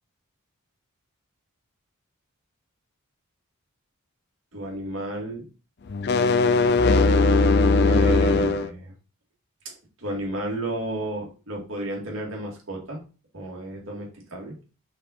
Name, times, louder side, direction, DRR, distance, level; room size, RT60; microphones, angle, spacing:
voice 1, 4.5-5.4 7.8-8.9 10.0-13.0 13.3-14.5, right 1 dB, 65° right, -1 dB, 2.3 m, -32 dB
sound 1, 5.9-8.7, left 3 dB, 50° left, 0.4 m, -19 dB
5.5 x 5.5 x 4.2 m, 0.34 s
head